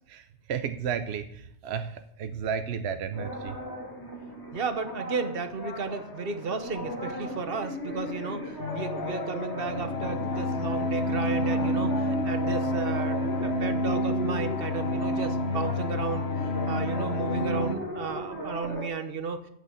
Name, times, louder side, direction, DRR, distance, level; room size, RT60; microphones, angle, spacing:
voice 1, 0.1-3.6, right 7 dB, 75° right, 9 dB, 0.9 m, -33 dB
sound 1, 3.1-18.9, left 1 dB, 20° left, 2.2 m, -37 dB
voice 2, 4.5-16.3 16.7-19.4, right 5 dB, 60° right, 9 dB, 1.2 m, -33 dB
sound 2, 8.6-17.8, left 1 dB, 70° left, 1.3 m, -29 dB
8.9 x 6.2 x 8.3 m, 0.76 s
omnidirectional pair, 1.1 m